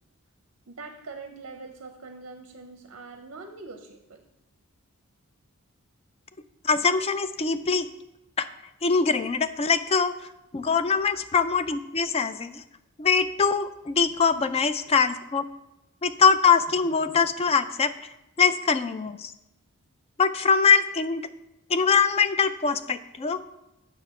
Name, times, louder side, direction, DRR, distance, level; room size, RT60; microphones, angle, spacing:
voice 1, 0.7-4.2, right 3 dB, 55° right, 5 dB, 0.6 m, -43 dB
voice 2, 6.6-7.9 8.4-8.5 8.8-10.1 10.5-12.6 13.0-15.4 16.0-17.9 18.4-19.3 20.2-21.2 21.7-23.4, left 5 dB, 25° left, 11 dB, 0.3 m, -23 dB
7.7 x 6.3 x 4.8 m, 0.92 s
head